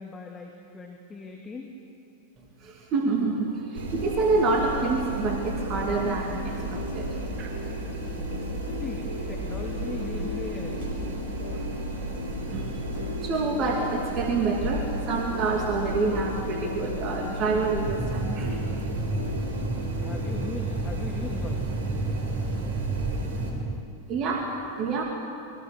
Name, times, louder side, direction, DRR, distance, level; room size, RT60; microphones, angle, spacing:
voice 1, 0.0-1.7 8.8-10.9 20.0-21.6, left 4 dB, 15° left, 1 dB, 2.4 m, -39 dB
voice 2, 2.6-7.5 11.5-11.6 12.5-12.8 13.2-18.6 24.1-25.0, right 3 dB, 35° right, 1 dB, 2.8 m, -27 dB
sound 1, 3.5-20.5, left 3 dB, 85° left, 2.6 m, -39 dB
sound 2, 3.7-23.5, right 1 dB, 55° right, 5.2 m, -33 dB
sound 3, 17.9-23.8, right 3 dB, 10° right, 1.2 m, -32 dB
27.0 x 22.5 x 6.8 m, 2.6 s
figure-of-eight pair, 90°, 0 cm